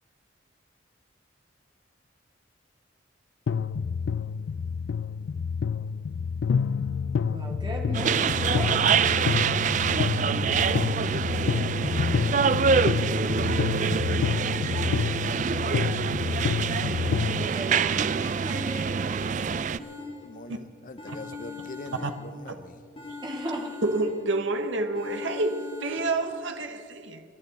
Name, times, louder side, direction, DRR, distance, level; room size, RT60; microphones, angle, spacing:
sound 1, 3.5-17.5, left 6 dB, 70° left, 0.4 m, -28 dB
voice 1, 7.3-8.8 16.8-19.8 23.2-23.7, right 1 dB, 20° right, 2.1 m, -37 dB
sound 2, 7.9-19.8, right 6 dB, 40° right, 0.3 m, -26 dB
sound 3, 19.8-20.6 21.0-22.6 23.0-24.5 25.0-26.4, left 5 dB, 25° left, 1.8 m, -41 dB
voice 2, 20.2-22.8, left 2 dB, 45° left, 0.7 m, -43 dB
voice 3, 23.8-27.2, right 2 dB, 75° right, 1.1 m, -28 dB
27.0 x 11.5 x 4.1 m
head